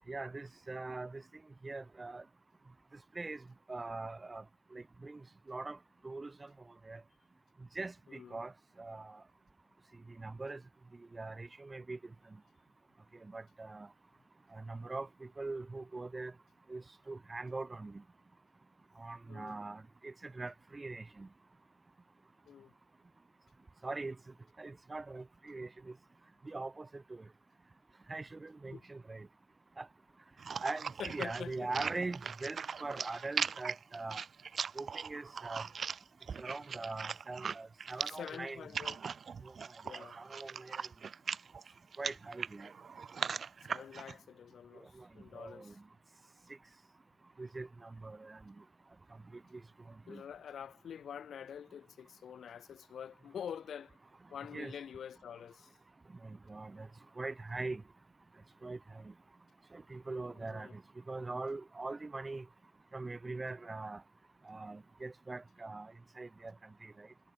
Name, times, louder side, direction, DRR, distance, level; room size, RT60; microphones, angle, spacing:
voice 1, 0.1-1.2 1.6-2.2 3.2-3.4 3.7-4.4 4.7-5.2 5.5-5.8 6.0-6.5 6.9-7.0 7.8-8.5 8.8-9.2 10.2-10.6 11.1-12.0 13.2-13.9 14.5-16.3 16.7-18.0 19.0-21.3 23.8-24.2 24.6-25.9 26.4-27.2 28.1-29.3 29.8-29.9 30.6-34.2 34.8-35.6 36.4-38.7 39.4-39.5 40.0-40.9 42.0-42.7 45.0-45.1 45.3-45.7 47.4-48.5 50.1-50.2 54.5-54.7 56.2-56.9 57.2-57.8 58.6-59.1 59.7-60.8 61.1-62.5 62.9-64.0 64.5-65.9 66.2-66.5 66.8-67.1, right 3 dB, 20° right, 1.8 m, -42 dB
voice 2, 8.1-8.4 19.3-19.6 22.5-22.7 28.7-28.8 31.0-31.7 38.0-39.0 39.8-40.2 43.7-45.8 50.1-54.0 54.3-55.7 60.5-60.8, left 8 dB, 60° left, 4.3 m, -46 dB
sound 1, 30.4-44.1, right 6 dB, 45° right, 0.4 m, -40 dB
cardioid pair, 90°, 0 cm